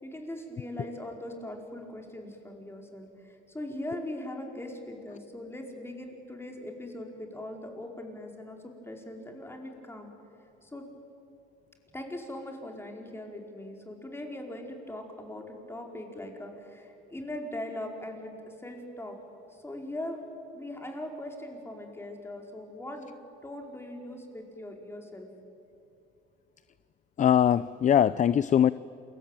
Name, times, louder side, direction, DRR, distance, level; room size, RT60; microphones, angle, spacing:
voice 1, 0.0-10.1 10.6-10.9 11.9-19.2 19.5-20.2 20.5-23.2 23.4-25.3, left 1 dB, 10° left, 2 dB, 4.8 m, -40 dB
voice 2, 27.2-28.7, left 9 dB, 40° left, 17 dB, 0.5 m, -22 dB
28.5 x 22.0 x 9.2 m, 2.7 s
cardioid pair, 100°, 20 cm